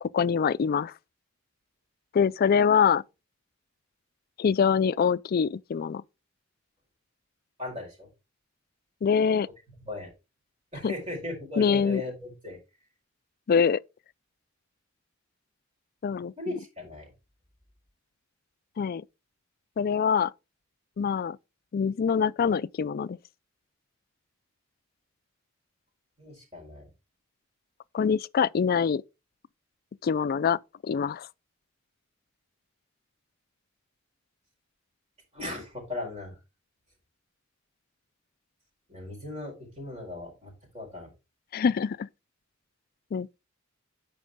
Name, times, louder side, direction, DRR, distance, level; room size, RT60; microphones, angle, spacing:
voice 1, 0.0-0.9 2.1-3.0 4.4-6.0 9.0-9.5 10.8-10.9 11.6-12.0 13.5-13.8 16.0-16.3 18.8-19.0 19.8-20.3 21.0-21.4 21.7-23.2 27.9-29.0 30.0-31.3 41.5-42.1 43.1-43.3, left 6 dB, 45° left, 0.3 m, -24 dB
voice 2, 7.6-8.1 9.8-10.1 10.7-12.6 16.4-17.1 26.2-26.9 35.3-36.3 38.9-41.1, left 2 dB, 30° right, 4.6 m, -37 dB
9.2 x 5.3 x 3.5 m
head